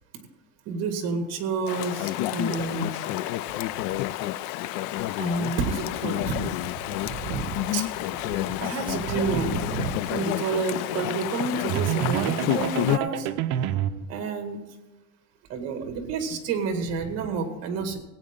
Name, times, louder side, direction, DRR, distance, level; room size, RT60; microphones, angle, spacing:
voice 1, 0.7-3.0 5.2-6.6 6.9-7.9 8.1-13.3 14.1-14.6 15.5-18.0, right 4 dB, 50° right, 6 dB, 2.0 m, -29 dB
Chatter / Stream, 1.7-13.0, left 15 dB, 60° left, 0.4 m, -29 dB
sound 1, 11.7-14.0, right 10 dB, 70° right, 0.7 m, -28 dB
18.0 x 8.9 x 3.8 m, 1.1 s
cardioid pair, 170°, 33 cm